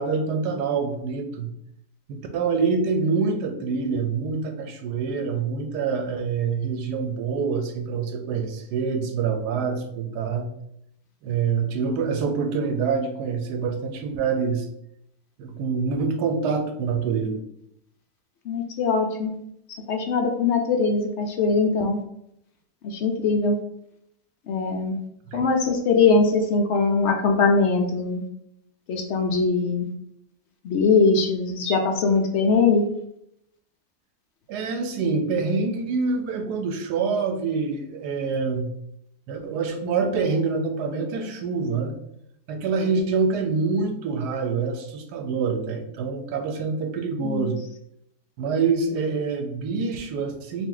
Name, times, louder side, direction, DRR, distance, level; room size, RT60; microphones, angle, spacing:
voice 1, 0.0-1.5 2.1-10.5 11.2-14.7 15.4-17.4 25.3-25.5 34.5-38.7 39.3-41.9 42.5-47.6 48.4-50.7, right 5 dB, 80° right, 5 dB, 1.2 m, -26 dB
voice 2, 18.5-19.3 19.9-22.0 22.8-23.6 24.5-25.0 25.3-28.2 28.9-29.9 30.6-32.8 47.2-47.5, left 4 dB, 80° left, 3 dB, 0.6 m, -21 dB
3.7 x 2.5 x 3.8 m, 0.75 s
omnidirectional pair, 1.8 m